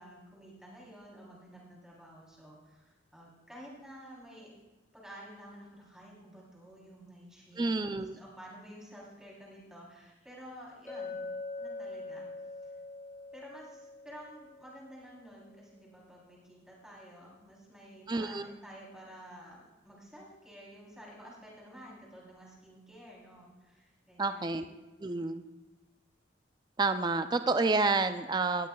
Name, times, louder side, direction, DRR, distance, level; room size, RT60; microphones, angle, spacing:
voice 1, 0.0-4.5 4.9-7.7 7.9-11.2 11.6-12.3 12.6-12.7 13.3-24.6 25.0-25.3, equal, 5° right, -5 dB, 3.4 m, -51 dB
voice 2, 7.6-8.2 18.1-18.5 24.2-24.7 25.0-25.4 26.8-28.7, right 3 dB, 20° right, 9 dB, 0.4 m, -29 dB
Chink clink, 10.9-15.3, left 3 dB, 15° left, 3.7 m, -43 dB
17.5 x 15.0 x 2.3 m, 1.1 s
head